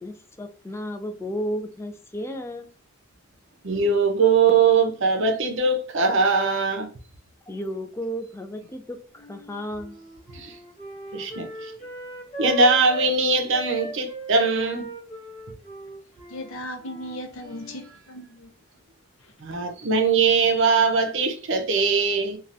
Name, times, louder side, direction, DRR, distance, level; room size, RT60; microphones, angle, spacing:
voice 1, 0.0-2.7 7.5-10.0, equal, 15° left, 0.4 m, -33 dB
voice 2, 3.6-6.9 10.3-10.6 11.1-11.7 12.4-14.9 19.4-22.4, right 4 dB, 65° right, 0.6 m, -21 dB
Wind instrument woodwind instrument, 9.2-13.1 13.5-17.9, equal, 30° left, 0.9 m, -38 dB
voice 3, 16.3-18.5 19.2-19.3, equal, 80° left, 0.6 m, -37 dB
2.6 x 2.3 x 3.3 m
head